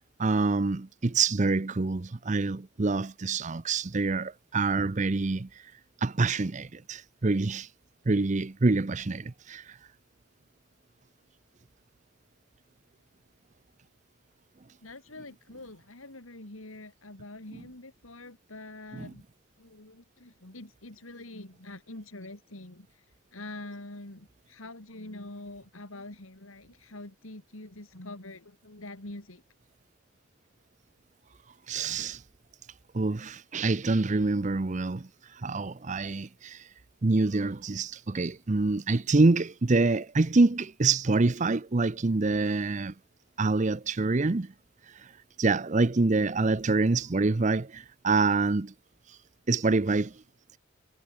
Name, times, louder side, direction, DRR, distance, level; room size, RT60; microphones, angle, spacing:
voice 1, 0.2-5.6 6.0-7.7 8.1-9.8 18.9-19.1 31.7-32.2 32.9-36.7 37.0-42.9 43.4-44.5 44.9-45.1 45.4-48.7 49.1-49.2 49.5-50.1, right 3 dB, 35° right, 0.6 m, -26 dB
voice 2, 14.8-19.2 19.6-29.4, left 2 dB, 75° left, 3.2 m, -45 dB
head